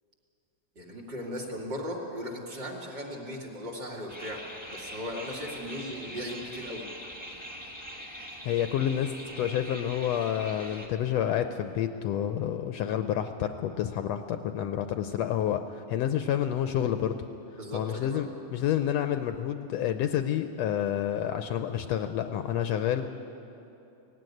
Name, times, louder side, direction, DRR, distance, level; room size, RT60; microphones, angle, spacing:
voice 1, 0.8-4.4 4.7-6.9 17.6-18.2, equal, 35° right, -1 dB, 2.9 m, -37 dB
sound 1, 4.1-10.9, equal, 5° right, 1.3 m, -43 dB
voice 2, 8.4-17.1 17.7-23.1, left 10 dB, 75° left, 8 dB, 1.7 m, -29 dB
18.5 x 15.5 x 9.6 m, 2.8 s
omnidirectional pair, 3.3 m